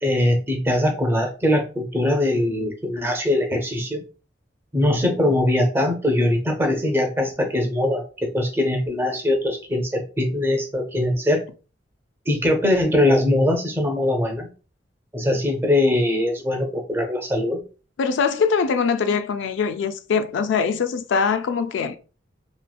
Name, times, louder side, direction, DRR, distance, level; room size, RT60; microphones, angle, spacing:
voice 1, 0.0-4.0 4.7-11.5 12.3-14.5 15.1-17.6, left 1 dB, 10° right, 0.5 m, -21 dB
voice 2, 18.0-22.0, left 5 dB, 70° left, 0.3 m, -22 dB
2.8 x 2.5 x 2.2 m
head